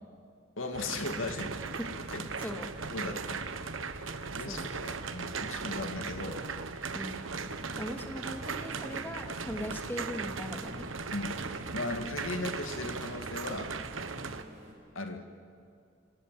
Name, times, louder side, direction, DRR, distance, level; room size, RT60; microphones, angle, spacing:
voice 1, 0.6-1.5 2.1-2.5 2.9-3.4 4.3-6.4 9.6-9.7 11.1-11.4 11.7-13.7 14.9-15.3, left 2 dB, 90° left, 5 dB, 2.3 m, -37 dB
sound 1, 0.7-14.4, right 4 dB, 85° right, 1.4 m, -38 dB
voice 2, 4.1-4.7 6.9-7.3 7.8-10.9, equal, 10° left, 4 dB, 2.2 m, -40 dB
sound 2, 7.2-14.7, equal, 35° right, 6.9 m, -51 dB
26.5 x 26.5 x 7.7 m, 2.4 s
head